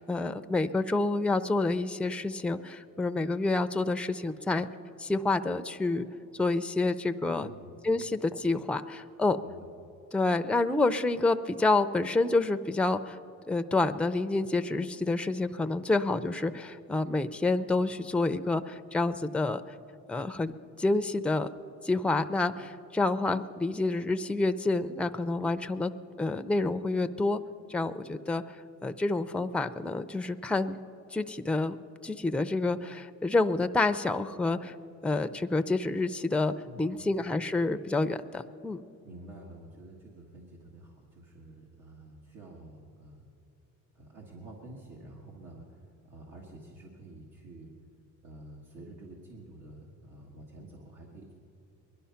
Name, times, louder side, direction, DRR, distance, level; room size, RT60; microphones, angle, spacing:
voice 1, 0.0-4.7 5.0-6.0 6.4-7.5 7.8-9.4 10.1-13.2 13.5-19.6 20.1-20.5 20.8-21.5 21.8-25.9 26.2-27.4 27.7-28.4 28.8-30.8 31.1-31.8 32.0-34.7 35.0-38.8, left 2 dB, 5° left, 9 dB, 0.5 m, -28 dB
voice 2, 7.4-7.7 9.4-9.7 36.6-37.1 39.0-43.3 43.9-47.7 48.2-51.3, right 2 dB, 80° right, -2 dB, 1.9 m, -49 dB
21.0 x 11.5 x 5.7 m, 2.8 s
cardioid pair, 90°, 30 cm